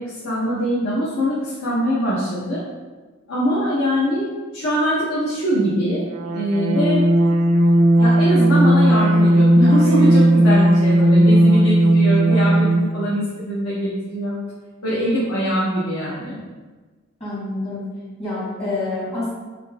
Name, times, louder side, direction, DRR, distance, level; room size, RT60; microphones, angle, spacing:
voice 1, 0.0-2.6 3.3-6.0 6.3-7.1 8.0-14.3 14.8-16.4, equal, 75° left, -9 dB, 1.1 m, -22 dB
sound 1, 6.2-13.0, right 1 dB, 75° right, 0.4 m, -15 dB
voice 2, 17.2-17.9 18.2-19.3, left 2 dB, 30° left, -7 dB, 1.4 m, -27 dB
5.2 x 3.8 x 2.3 m, 1.3 s
head